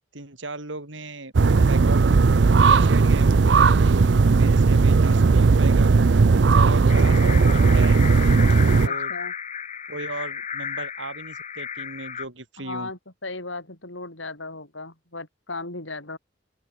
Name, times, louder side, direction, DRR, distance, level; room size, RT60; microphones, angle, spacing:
voice 1, 0.0-1.3 1.7-5.9 6.5-8.0 8.6-9.1 9.9-12.9, right 2 dB, 85° right, 5.4 m, -36 dB
sound 1, 1.3-8.9, right 4 dB, 65° right, 0.5 m, -17 dB
voice 2, 6.7-7.5 8.9-9.3 12.6-16.2, left 3 dB, 90° left, 7.8 m, -37 dB
sound 2, 6.9-12.3, left 7 dB, 40° left, 3.6 m, -33 dB
open air
head